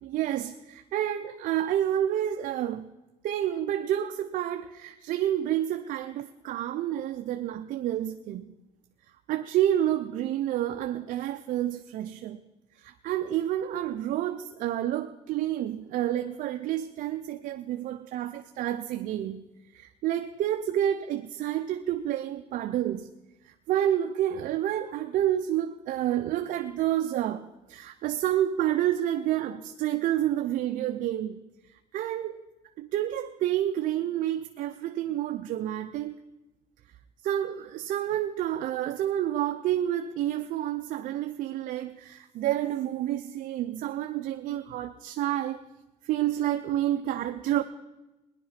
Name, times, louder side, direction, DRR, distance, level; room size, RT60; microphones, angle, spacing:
voice 1, 0.0-2.9 3.2-8.5 9.3-12.4 12.8-19.4 19.7-23.1 23.7-31.4 31.9-32.4 32.8-36.2 37.2-45.6 46.0-47.6, right 12 dB, 75° right, 6 dB, 0.7 m, -29 dB
18.0 x 10.5 x 5.8 m, 1.0 s
cardioid pair, 110°, 14 cm